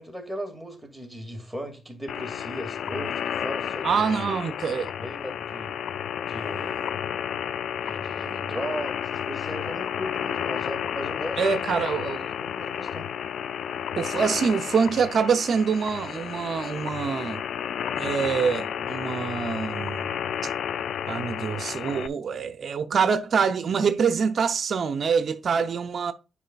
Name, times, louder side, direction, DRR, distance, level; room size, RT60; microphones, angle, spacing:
voice 1, 0.0-4.4 5.0-5.7 6.3-6.9 7.8-11.8 12.4-13.1, equal, 5° right, 2.3 m, -37 dB
sound 1, 2.1-22.1, left 8 dB, 80° left, 0.3 m, -32 dB
voice 2, 3.8-4.9 11.4-12.2 14.0-17.4 18.0-20.1 20.4-20.5 21.1-26.1, right 6 dB, 60° right, 0.6 m, -25 dB
10.0 x 4.7 x 2.4 m
cardioid pair, 70°, 0 cm